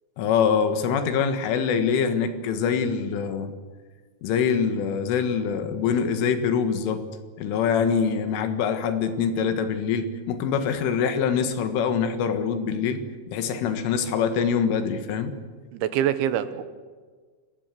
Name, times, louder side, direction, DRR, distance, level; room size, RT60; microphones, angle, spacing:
voice 1, 0.2-3.5 4.2-7.0 7.4-13.0 13.3-15.3, left 6 dB, 80° left, 8 dB, 4.3 m, -24 dB
voice 2, 15.7-16.6, right 10 dB, 75° right, 12 dB, 3.4 m, -24 dB
28.5 x 18.0 x 7.8 m, 1.5 s
omnidirectional pair, 5.6 m